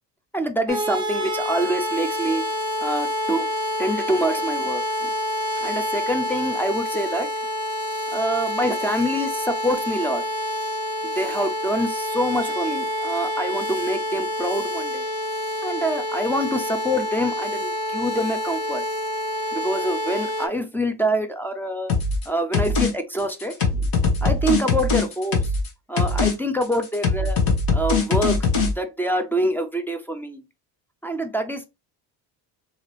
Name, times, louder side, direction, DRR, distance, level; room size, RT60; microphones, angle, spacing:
voice 1, 0.3-2.4 2.8-3.5 3.8-5.1 5.6-7.3 8.1-10.2 11.0-15.1 15.6-18.8 19.5-21.9 22.3-23.9 24.2-25.4 25.9-27.4 27.7-28.5 28.8-30.4 31.0-31.7, equal, 5° left, 0.4 m, -26 dB
sound 1, 0.7-20.5, left 1 dB, 10° right, 0.9 m, -27 dB
sound 2, 21.9-22.2 22.5-22.9 23.2-25.7 26.0-26.3 26.6-28.7, left 4 dB, 55° left, 1.3 m, -21 dB
2.9 x 2.8 x 3.2 m
cardioid pair, 100°, 42 cm